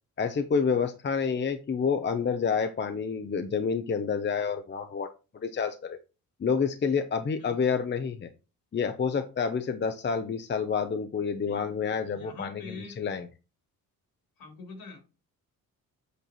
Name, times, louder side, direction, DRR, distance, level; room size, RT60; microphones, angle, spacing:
voice 1, 0.2-6.0 6.4-8.3 8.7-13.3, left 6 dB, 30° left, 0.7 m, -29 dB
voice 2, 7.2-7.6 11.4-11.6 12.0-13.0 14.4-15.0, left 3 dB, 65° left, 3.4 m, -44 dB
8.3 x 4.5 x 4.3 m
cardioid pair, 130°, 37 cm